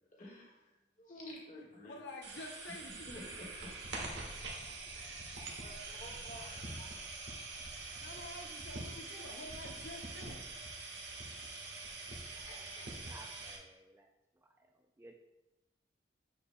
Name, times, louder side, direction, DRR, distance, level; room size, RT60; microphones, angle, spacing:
voice 1, 0.2-0.5 1.0-2.0 3.1-3.7 5.6-6.9 7.7-8.1 12.2-13.1, left 1 dB, 45° left, -3 dB, 1.6 m, -51 dB
voice 2, 1.9-3.2 8.0-10.4, left 2 dB, 75° left, 2 dB, 0.8 m, -49 dB
sound 1, 2.2-13.6, right 3 dB, 75° right, 1.3 m, -45 dB
voice 3, 13.1-15.1, right 2 dB, 15° right, 3 dB, 0.3 m, -57 dB
7.0 x 6.8 x 2.2 m, 0.95 s
head